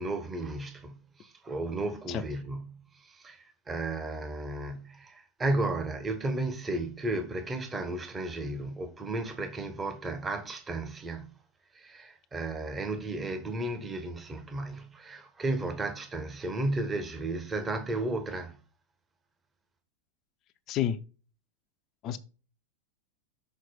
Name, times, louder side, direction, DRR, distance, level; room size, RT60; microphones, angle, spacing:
voice 1, 0.0-11.3 11.7-18.6, right 2 dB, 15° right, 1.0 m, -34 dB
voice 2, 2.1-2.2 20.7-21.0 22.0-22.2, left 10 dB, 35° left, 0.6 m, -29 dB
6.4 x 4.4 x 4.2 m
figure-of-eight pair, 90°, 0 cm